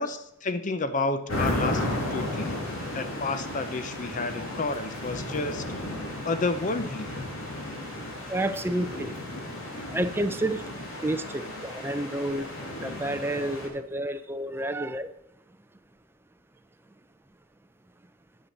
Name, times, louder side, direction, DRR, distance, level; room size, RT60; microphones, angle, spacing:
voice 1, 0.0-2.6 2.9-5.6 6.2-7.1, left 3 dB, 35° left, 11 dB, 0.6 m, -30 dB
sound 1, 1.3-13.7, left 1 dB, 70° left, 2.8 m, -34 dB
voice 2, 8.3-9.1 9.9-10.6 11.0-12.5 12.8-15.1, right 1 dB, 10° right, 9 dB, 0.5 m, -29 dB
9.7 x 5.7 x 6.6 m, 0.76 s
head